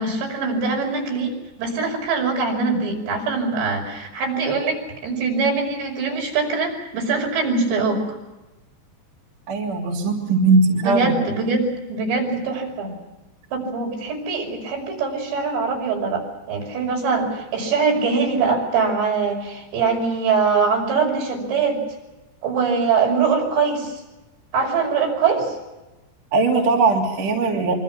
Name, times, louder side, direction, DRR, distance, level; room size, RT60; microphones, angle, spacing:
voice 1, 0.0-8.0 10.8-12.9 13.5-21.8 22.4-24.0 24.5-25.6, right 4 dB, 80° right, 1 dB, 7.9 m, -23 dB
voice 2, 9.5-11.1 26.3-27.7, right 3 dB, 50° right, -1 dB, 4.4 m, -19 dB
26.5 x 25.0 x 5.9 m, 1.0 s
omnidirectional pair, 5.0 m